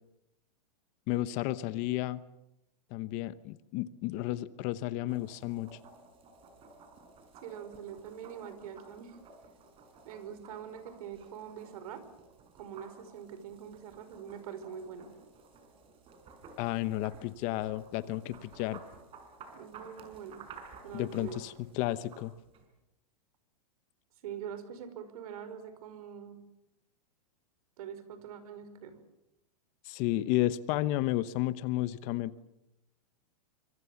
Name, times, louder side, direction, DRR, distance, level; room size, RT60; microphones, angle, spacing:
voice 1, 1.1-2.2 2.9-5.8 16.6-18.8 20.9-22.3 29.8-32.4, left 15 dB, 35° left, 15 dB, 1.0 m, -32 dB
sound 1, 5.1-22.7, right 4 dB, 25° right, 5.2 m, -54 dB
voice 2, 7.4-9.2 10.0-12.0 12.5-15.1 19.5-20.4 20.8-21.3 24.2-26.4 27.8-29.0, right 8 dB, 60° right, 11 dB, 5.4 m, -44 dB
25.5 x 25.5 x 7.2 m, 0.86 s
supercardioid pair, 150°, 21 cm